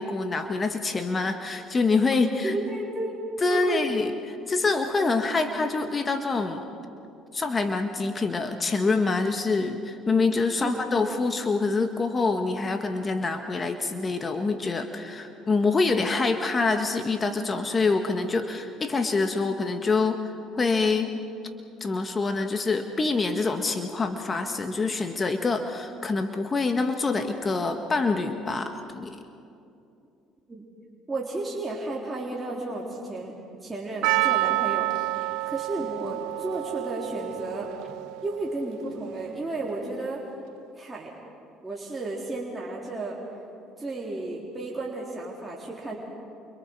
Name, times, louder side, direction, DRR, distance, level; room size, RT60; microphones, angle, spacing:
voice 1, 0.0-2.6 3.4-6.6 7.3-21.1 21.8-29.2, left 3 dB, 30° left, 6 dB, 1.6 m, -26 dB
voice 2, 2.4-3.8 10.6-10.8 30.5-30.7 31.1-33.3 33.6-35.1 35.5-37.7 38.2-40.2 40.8-41.1 41.6-43.2 43.8-46.0, right 2 dB, 20° right, -4 dB, 3.8 m, -33 dB
Percussion, 34.0-39.0, right 18 dB, 75° right, 0.5 m, -29 dB
29.0 x 25.5 x 4.8 m, 2.6 s
supercardioid pair, 75°, 0 cm